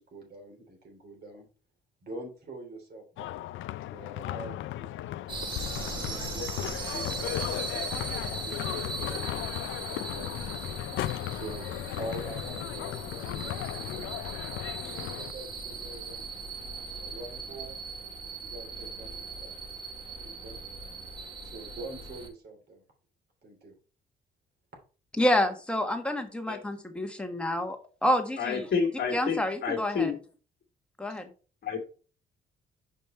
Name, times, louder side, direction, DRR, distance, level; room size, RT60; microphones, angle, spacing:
voice 1, 0.0-1.5 2.0-3.4 3.8-5.0 5.9-7.9 8.3-10.5 11.3-14.3 14.8-16.3 17.0-17.8 18.4-19.5 20.2-20.6 21.4-22.8 23.4-23.7, right 1 dB, 55° right, 3.2 m, -45 dB
sound 1, 3.2-15.3, left 14 dB, 80° left, 0.4 m, -36 dB
sound 2, 5.3-22.3, right 4 dB, 25° right, 2.9 m, -39 dB
voice 2, 25.2-28.7 29.1-30.2 31.0-31.3, left 1 dB, 5° left, 1.4 m, -28 dB
voice 3, 28.4-30.2 31.6-31.8, left 6 dB, 55° left, 1.7 m, -29 dB
5.4 x 5.2 x 4.3 m
cardioid pair, 90°, 20 cm